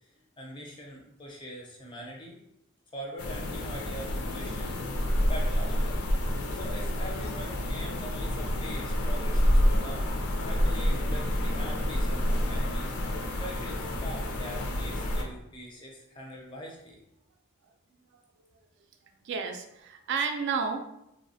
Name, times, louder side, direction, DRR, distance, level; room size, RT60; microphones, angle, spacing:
voice 1, 0.4-2.4 2.9-4.8 5.3-6.0 6.5-10.1 10.4-12.9 13.4-17.0, equal, 25° left, -1 dB, 0.4 m, -43 dB
sound 1, 3.2-15.2, equal, 85° left, 0.4 m, -28 dB
voice 2, 19.2-20.9, right 5 dB, 55° right, 5 dB, 0.3 m, -31 dB
3.0 x 2.0 x 2.6 m, 0.84 s
head